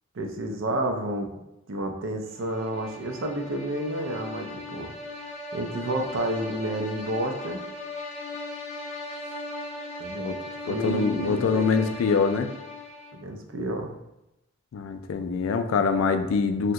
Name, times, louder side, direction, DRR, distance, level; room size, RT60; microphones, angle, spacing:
voice 1, 0.1-1.4 1.7-4.9 5.5-7.6 10.0-10.3 10.6-11.9 13.2-13.9, right 1 dB, 75° right, 4 dB, 0.5 m, -30 dB
sound 1, 2.4-13.3, left 1 dB, 35° left, 0.5 m, -38 dB
voice 2, 10.7-12.5 14.7-16.7, left 5 dB, 90° left, 8 dB, 0.3 m, -24 dB
2.7 x 2.2 x 3.6 m, 0.90 s
head